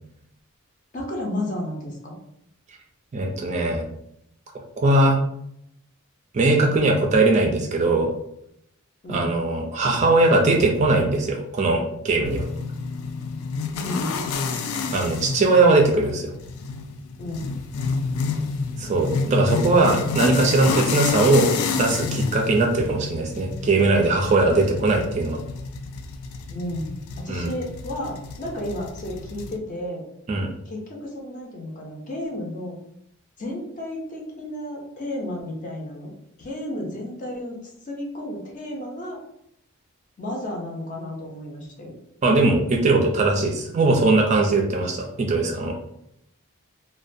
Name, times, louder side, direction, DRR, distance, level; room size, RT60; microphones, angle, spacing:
voice 1, 0.9-2.1 9.0-9.3 13.8-14.1 17.2-17.5 26.5-30.0 30.7-32.8 33.4-36.1 36.4-39.2 40.2-41.9, left 1 dB, 40° left, -1 dB, 0.5 m, -32 dB
voice 2, 3.1-3.8 4.8-5.2 6.3-8.1 9.1-12.4 14.9-16.3 18.8-21.5 21.8-25.4 27.3-27.5 30.3-30.5 42.2-45.7, right 2 dB, 35° right, 1 dB, 0.3 m, -20 dB
sound 1, 12.2-29.6, left 4 dB, 90° left, 0.3 m, -29 dB
2.4 x 2.1 x 2.5 m, 0.75 s
head